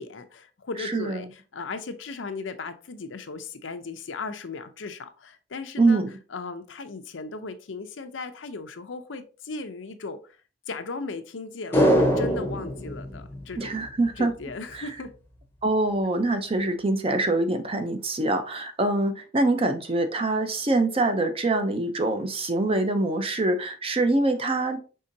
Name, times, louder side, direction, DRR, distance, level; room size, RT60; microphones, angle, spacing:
voice 1, 0.0-6.0 6.3-10.4 10.7-13.8 14.2-15.1, left 3 dB, 85° left, 0.6 m, -37 dB
voice 2, 5.8-6.1 13.6-14.3 14.7-14.9 15.6-24.8, right 2 dB, 30° right, 0.6 m, -24 dB
sound 1, 11.7-14.2 14.5-14.6, equal, 15° left, 0.7 m, -24 dB
5.5 x 3.6 x 2.6 m
head